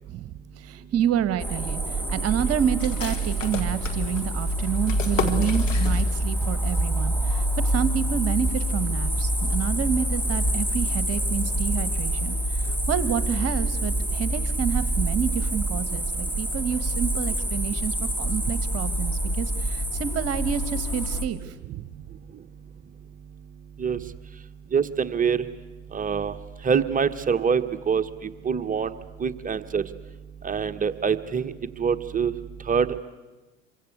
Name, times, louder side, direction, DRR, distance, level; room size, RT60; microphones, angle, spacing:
voice 1, 0.6-21.9, right 9 dB, 40° right, 13 dB, 1.5 m, -29 dB
sound 1, 1.4-21.3, right 1 dB, 5° left, 2.7 m, -26 dB
sound 2, 2.8-6.4 6.7-6.8 7.2-7.7, left 4 dB, 90° left, 2.2 m, -33 dB
voice 2, 24.7-25.4 25.9-26.3 26.6-28.9 29.2-29.8 30.4-31.5 31.8-32.3 32.7-33.0, right 6 dB, 20° right, 9 dB, 1.3 m, -25 dB
27.5 x 24.0 x 8.2 m, 1.2 s
figure-of-eight pair, 75°, 37 cm